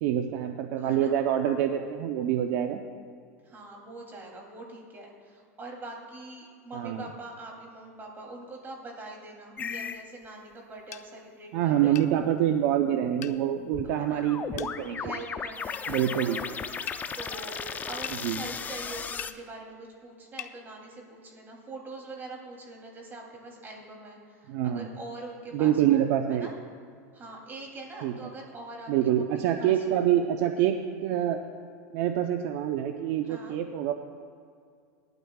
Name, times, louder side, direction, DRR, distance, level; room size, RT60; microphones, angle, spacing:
voice 1, 0.0-2.8 6.7-7.1 11.5-15.3 15.9-16.4 18.2-18.4 24.5-24.9 25.5-26.5 28.0-28.1 28.9-30.8 31.0-31.4 31.9-33.9, right 11 dB, 60° right, 5 dB, 0.7 m, -26 dB
voice 2, 0.8-1.2 3.4-12.0 14.0-14.2 14.9-16.4 17.1-17.6 17.9-26.0 26.3-26.5 27.1-30.2 33.2-33.6, right 2 dB, 25° right, -1 dB, 3.0 m, -43 dB
sound 1, 9.6-10.0 13.7-19.3, left 6 dB, 20° left, 0.5 m, -36 dB
sound 2, 10.9-11.1 12.0-12.1 13.2-13.4 14.6-14.7 15.7-15.9 16.9-17.0 18.0-18.2 19.2-19.4 20.4-20.6, left 12 dB, 90° left, 0.6 m, -39 dB
19.5 x 12.0 x 2.4 m, 2.2 s
supercardioid pair, 125°, 9 cm